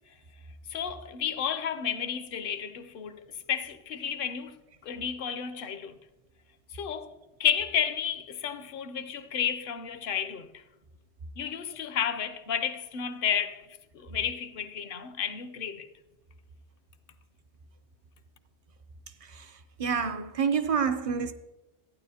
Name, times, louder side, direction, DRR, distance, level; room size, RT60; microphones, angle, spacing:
voice 1, 0.7-6.0 6.7-10.5 11.4-13.7 13.9-15.9, left 8 dB, 60° left, 0.7 m, -32 dB
voice 2, 19.2-21.3, right 6 dB, 50° right, 0.4 m, -28 dB
14.0 x 9.3 x 2.8 m
omnidirectional pair, 1.2 m